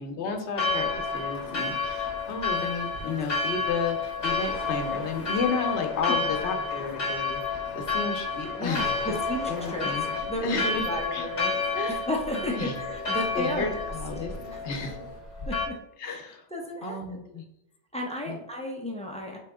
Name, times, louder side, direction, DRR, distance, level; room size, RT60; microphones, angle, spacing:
voice 1, 0.0-9.2 9.5-10.0 10.4-10.9 11.1-11.3 11.7-12.0 12.3-12.7 13.1-14.3 14.6-15.0 16.0-16.4 16.8-17.4 18.3-18.4, left 4 dB, 75° left, 5 dB, 1.0 m, -32 dB
Church bell, 0.5-15.7, left 4 dB, 40° left, 0.8 m, -30 dB
sound 1, 1.1-15.2, right 2 dB, 35° right, 0.7 m, -46 dB
voice 2, 8.6-9.9 10.3-11.5 11.9-13.7 15.5-15.7 16.1-16.2 16.5-17.2 17.9-19.4, left 1 dB, 10° left, 0 dB, 0.3 m, -33 dB
4.8 x 2.9 x 3.5 m, 0.82 s
omnidirectional pair, 1.2 m